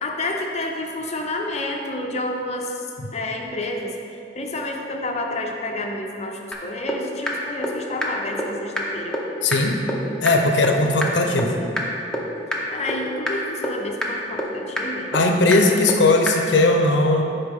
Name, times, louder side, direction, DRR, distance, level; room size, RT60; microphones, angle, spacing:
voice 1, 0.0-2.9 3.1-9.2 12.7-15.1, left 1 dB, 40° left, 2 dB, 0.6 m, -29 dB
sound 1, 6.5-6.6 6.9-7.0 7.3-7.4 7.6-7.7 8.0-8.1 8.4-8.5 8.8-8.9 9.1-9.2 9.5-9.6 9.9-10.0 10.3-10.4 10.6-10.7 11.0-11.1 11.4-11.5 11.8-11.9 12.1-12.2 12.5-12.6 12.9-13.0 13.3-13.4 13.6-13.7 14.0-14.1 14.4-14.5 14.8-14.9 15.1-15.2 15.5-15.6 15.9-16.0 16.3-16.4, equal, 5° left, 0.7 m, -24 dB
voice 2, 9.4-9.8 10.2-11.5 15.1-17.2, left 2 dB, 85° left, 4 dB, 0.7 m, -18 dB
10.5 x 4.2 x 3.6 m, 2.6 s
head